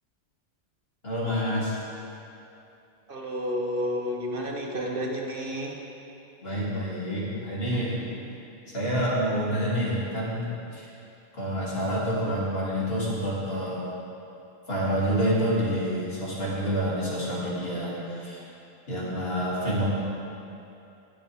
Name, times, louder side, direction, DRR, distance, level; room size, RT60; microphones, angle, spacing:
voice 1, 1.0-1.8 6.4-8.0 8.7-10.9 11.3-13.8 14.7-18.4 18.9-19.9, equal, 55° left, -7 dB, 2.8 m, -28 dB
voice 2, 3.1-5.8, equal, 50° right, 0 dB, 1.1 m, -30 dB
20.0 x 6.9 x 3.5 m, 2.8 s
omnidirectional pair, 1.2 m